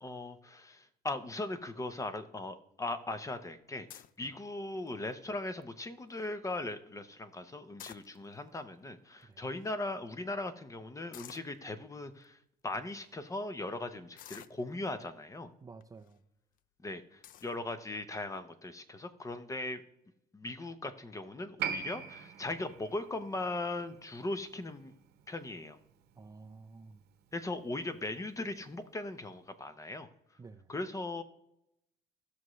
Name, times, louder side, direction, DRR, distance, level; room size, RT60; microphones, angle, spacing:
voice 1, 0.0-15.5 16.8-19.8 20.3-24.9 25.3-25.8 27.3-30.1 30.7-31.2, left 2 dB, 20° left, 11 dB, 0.8 m, -39 dB
sound 1, 3.9-4.2 4.9-5.2 5.6-5.7 5.9-6.3 7.6-8.5 9.2-9.3 9.5-9.7 11.1-11.6 12.2-12.3 12.9-13.1 14.2-15.0 15.8-16.1 16.6-16.7 17.2-17.6, left 11 dB, 55° left, 0.4 m, -51 dB
voice 2, 15.6-16.2 26.2-27.0 30.4-30.7, right 4 dB, 20° right, 7 dB, 0.5 m, -51 dB
Piano, 21.6-28.6 28.8-28.9, right 7 dB, 75° right, 1.0 m, -44 dB
16.0 x 6.4 x 3.1 m, 0.82 s
cardioid pair, 110°, 17 cm